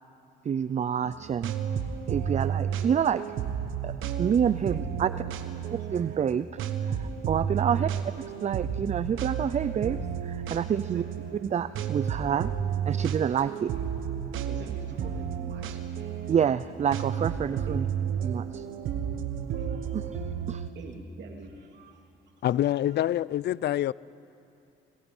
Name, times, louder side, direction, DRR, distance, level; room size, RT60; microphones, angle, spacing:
voice 1, 0.4-1.5 2.1-3.3 3.8-5.1 5.9-7.9 8.4-11.0 11.5-12.5 12.9-13.5 16.3-17.8 18.2-18.7 19.9-20.1 20.5-20.7, right 8 dB, 35° right, 0.5 m, -28 dB
sound 1, 1.0-20.7, right 8 dB, 85° right, 1.3 m, -32 dB
voice 2, 4.7-5.7 7.7-7.9 10.8-11.5 13.5-13.6 14.5-16.3 17.7-17.8 19.6-20.0 20.7-22.0 22.9-23.0, right 4 dB, 65° right, 2.9 m, -46 dB
voice 3, 22.4-23.9, left 12 dB, 60° left, 0.4 m, -26 dB
30.0 x 19.5 x 5.5 m
cardioid pair, 90°, 20 cm